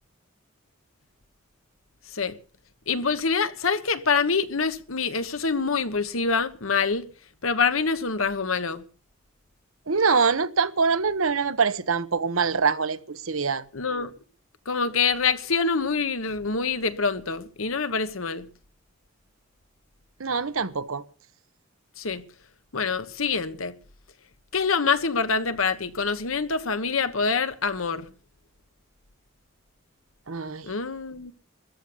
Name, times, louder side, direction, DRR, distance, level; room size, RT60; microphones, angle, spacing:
voice 1, 2.9-7.1 7.4-8.8 13.7-14.1 14.7-18.4 22.0-22.2 22.7-23.7 24.5-28.1 30.6-31.3, left 5 dB, 85° left, 1.3 m, -25 dB
voice 2, 9.9-13.6 20.2-21.0 30.3-30.7, right 5 dB, 85° right, 1.1 m, -24 dB
14.0 x 11.5 x 6.9 m
head